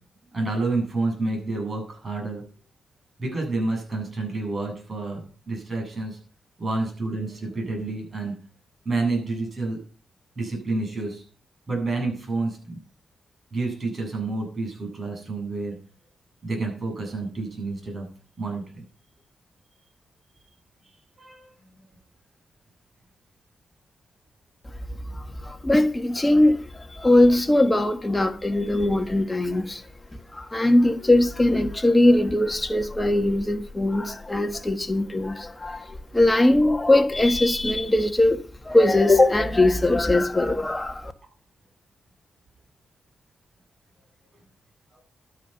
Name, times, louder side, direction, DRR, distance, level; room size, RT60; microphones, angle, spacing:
voice 1, 0.3-2.4 3.2-6.2 6.6-8.3 8.8-9.8 10.4-11.2 11.7-12.8 13.5-15.8 16.4-18.1 18.4-18.8 21.2-21.8 44.9-45.0, right 3 dB, 40° right, 7.9 m, -29 dB
voice 2, 25.1-29.8 30.3-41.1, left 1 dB, 15° left, 1.5 m, -21 dB
12.0 x 9.7 x 5.9 m
cardioid pair, 90°, 0 cm